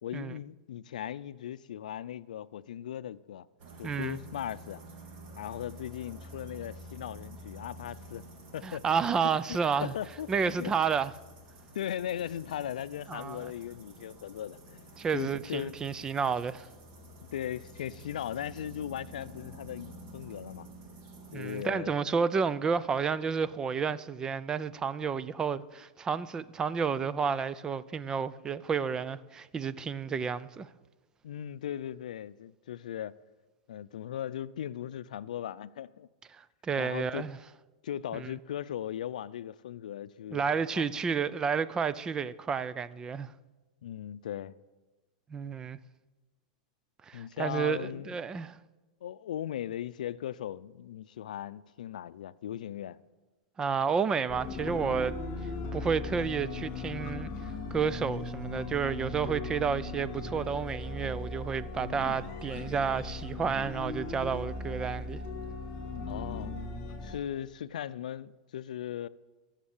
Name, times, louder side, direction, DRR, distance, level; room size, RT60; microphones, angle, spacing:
voice 1, 0.0-3.5 3.8-4.8 5.4-8.3 8.5-8.8 9.2-10.8 11.7-14.8 15.1-15.8 17.3-20.7 21.3-22.0 31.2-33.2 33.7-36.1 36.8-37.3 37.8-40.9 43.8-44.6 47.1-48.3 49.0-53.0 66.1-66.6 67.0-69.1, left 10 dB, 85° left, 0.5 m, -38 dB
sound 1, 3.6-21.7, right 1 dB, 40° right, 3.1 m, -50 dB
voice 2, 3.8-4.2 8.6-9.9 10.3-11.1 13.1-13.5 15.0-16.7 21.3-30.7 36.3-37.3 38.1-38.3 40.3-43.3 45.3-45.8 47.1-48.6 53.6-55.1 55.7-57.3 57.7-65.2, right 6 dB, 15° right, 0.4 m, -31 dB
sound 2, 54.3-67.2, left 3 dB, 35° left, 3.0 m, -38 dB
21.5 x 7.4 x 7.2 m
supercardioid pair, 145°, 4 cm